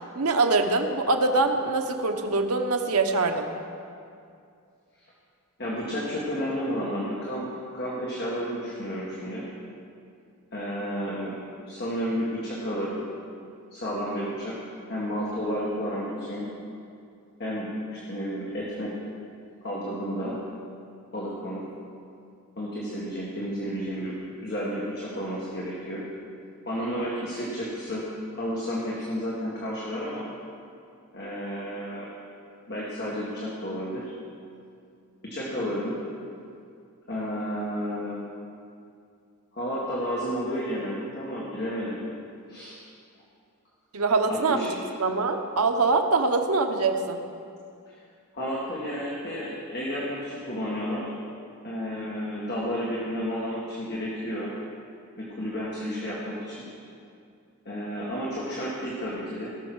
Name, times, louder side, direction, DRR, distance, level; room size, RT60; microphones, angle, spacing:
voice 1, 0.1-3.5 43.9-47.2, right 3 dB, 80° right, 5 dB, 1.0 m, -24 dB
voice 2, 5.6-9.5 10.5-11.4 11.7-13.0 13.7-14.6 14.9-16.5 17.4-18.9 19.6-20.4 21.1-21.7 22.6-26.0 26.7-28.1 28.3-30.3 31.1-32.1 32.7-34.1 35.2-36.0 37.1-38.2 39.5-42.0 42.5-42.8 44.3-44.7 48.3-51.1 51.6-54.5 55.2-56.6 57.7-59.5, equal, 50° left, -5 dB, 1.9 m, -31 dB
18.0 x 6.5 x 6.2 m, 2.4 s
head